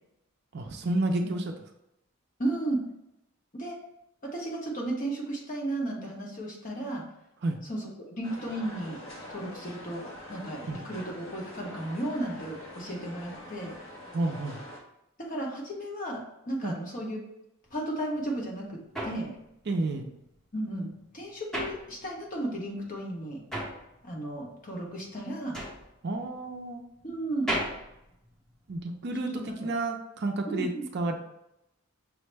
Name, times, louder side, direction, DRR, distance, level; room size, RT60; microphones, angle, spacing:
voice 1, 0.5-1.4 7.4-7.6 10.7-10.8 14.1-14.6 16.6-16.7 19.7-20.1 26.0-26.8 28.7-31.2, right 2 dB, 50° right, 4 dB, 0.4 m, -30 dB
voice 2, 2.4-2.9 3.5-3.8 4.2-7.1 7.7-9.0 9.3-13.7 15.2-17.2 17.7-19.3 20.5-23.4 24.0-25.6 27.0-27.5 29.2-29.7 30.5-30.8, right 1 dB, 35° left, -1 dB, 0.9 m, -34 dB
sound 1, 8.2-14.8, left 1 dB, 60° left, 1.0 m, -44 dB
sound 2, 18.2-22.5 22.8-29.0, right 1 dB, ahead, 0.8 m, -37 dB
6.2 x 2.1 x 3.3 m, 0.86 s
head